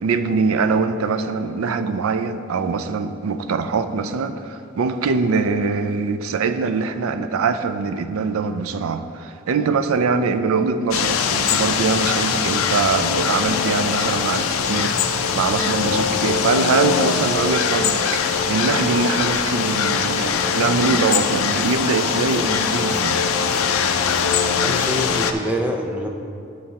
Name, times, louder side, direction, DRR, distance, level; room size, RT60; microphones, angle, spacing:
voice 1, 0.0-15.0 15.3-23.2, right 4 dB, 90° right, 9 dB, 0.4 m, -23 dB
sound 1, 10.9-25.3, left 6 dB, 85° left, 0.5 m, -21 dB
sound 2, 14.3-24.1, left 5 dB, 30° left, 0.7 m, -38 dB
voice 2, 24.6-26.1, equal, 5° right, 2 dB, 0.5 m, -26 dB
12.5 x 5.9 x 2.9 m, 2.5 s
head